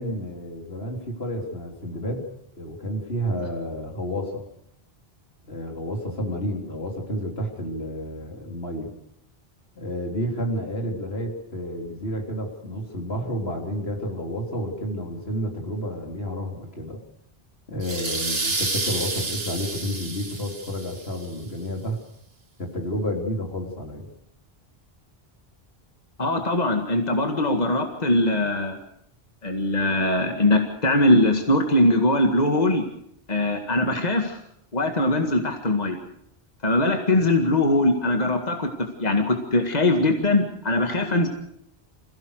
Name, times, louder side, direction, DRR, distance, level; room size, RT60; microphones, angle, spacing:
voice 1, 0.0-2.2 2.6-4.4 5.5-8.9 9.8-17.0 17.7-22.0 22.6-24.1, equal, 80° left, 1 dB, 3.9 m, -30 dB
sound 1, 17.8-21.2, right 3 dB, 75° right, 2.4 m, -29 dB
voice 2, 26.2-28.8 29.4-32.9 33.3-34.4 34.7-36.0 36.6-41.3, left 1 dB, 40° left, 4 dB, 2.1 m, -21 dB
27.0 x 16.5 x 6.6 m, 0.74 s
omnidirectional pair, 1.0 m